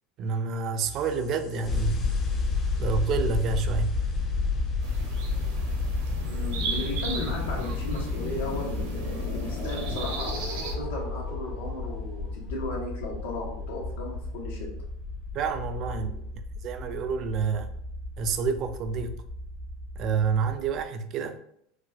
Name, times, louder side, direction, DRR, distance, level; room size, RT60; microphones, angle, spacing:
voice 1, 0.2-2.2 2.8-4.0 15.3-16.2 16.6-17.7 18.2-19.2 20.0-21.4, right 6 dB, 40° right, 0.3 m, -28 dB
sound 1, 0.8-20.5, equal, 50° left, 0.9 m, -39 dB
sound 2, 1.6-20.8, left 4 dB, 25° left, 0.4 m, -32 dB
sound 3, 4.8-10.8, right 4 dB, 80° right, 0.7 m, -37 dB
voice 2, 6.2-10.4 10.7-14.7, left 2 dB, 85° left, 1.0 m, -36 dB
4.0 x 2.2 x 2.3 m
supercardioid pair, 145°, 0 cm